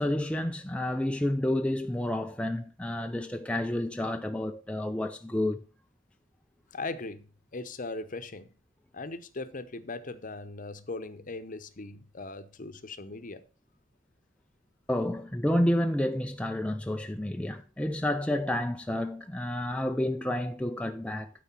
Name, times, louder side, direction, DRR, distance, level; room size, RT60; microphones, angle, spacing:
voice 1, 0.0-5.6 14.9-21.3, left 1 dB, 5° left, 0.4 m, -30 dB
voice 2, 6.7-7.2 7.5-8.5 8.9-13.4, left 3 dB, 40° left, 0.8 m, -39 dB
12.0 x 4.9 x 5.9 m
head